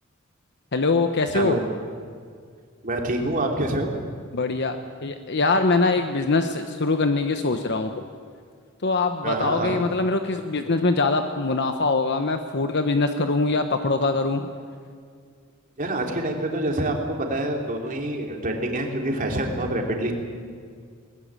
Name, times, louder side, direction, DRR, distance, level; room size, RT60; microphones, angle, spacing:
voice 1, 0.7-1.6 4.3-4.8 5.0-8.0 8.8-14.5, left 3 dB, 55° left, 7 dB, 1.0 m, -23 dB
voice 2, 1.3-1.7 2.8-4.0 9.2-9.8 15.8-20.1, right 1 dB, 40° right, 1 dB, 3.2 m, -26 dB
20.5 x 20.5 x 8.9 m, 2.1 s
head